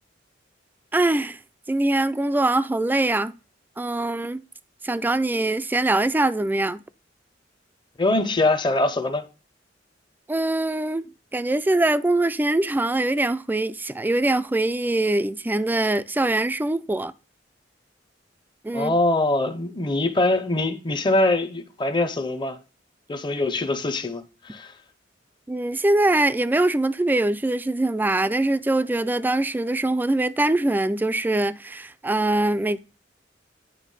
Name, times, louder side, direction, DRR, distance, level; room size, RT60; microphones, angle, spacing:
voice 1, 0.9-1.4 1.7-3.3 3.8-4.4 4.8-6.8 10.3-17.1 18.6-18.9 25.5-32.8, right 2 dB, 10° right, 0.3 m, -23 dB
voice 2, 8.0-9.2 18.7-22.6 23.1-24.7, left 2 dB, 25° left, 0.7 m, -23 dB
9.3 x 3.4 x 5.4 m
head